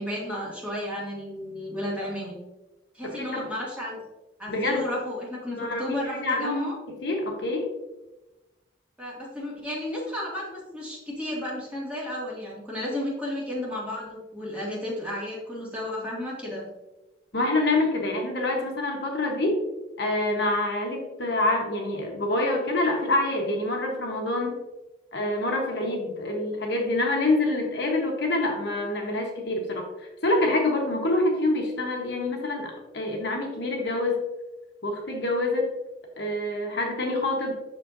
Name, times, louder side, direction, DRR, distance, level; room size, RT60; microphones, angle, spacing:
voice 1, 0.0-2.4 2.9-4.0 4.4-6.8 9.0-16.7, left 1 dB, 5° right, -6 dB, 2.0 m, -33 dB
voice 2, 3.1-3.5 4.5-4.8 5.6-6.7 7.0-7.7 17.3-19.6 20.0-24.6 25.1-34.2 34.8-35.7 36.2-37.5, left 2 dB, 60° left, 1 dB, 1.1 m, -26 dB
7.7 x 6.2 x 2.6 m, 1.0 s
head